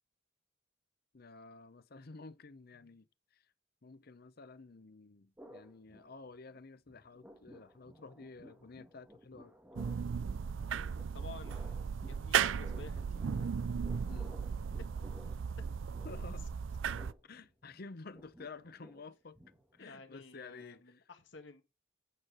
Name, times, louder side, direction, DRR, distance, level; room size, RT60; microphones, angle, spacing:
voice 1, 1.1-3.5 3.8-9.6 14.1-14.3 16.0-16.5 17.2-19.4 19.7-20.8, left 3 dB, 50° left, 0.7 m, -51 dB
sound 1, 5.4-6.6 6.9-20.0, equal, 10° right, 1.4 m, -57 dB
sound 2, 9.8-17.1, right 7 dB, 80° right, 0.4 m, -36 dB
voice 2, 11.1-13.5 15.0-15.4 19.8-21.6, left 3 dB, 70° left, 1.7 m, -53 dB
8.7 x 4.6 x 6.0 m
head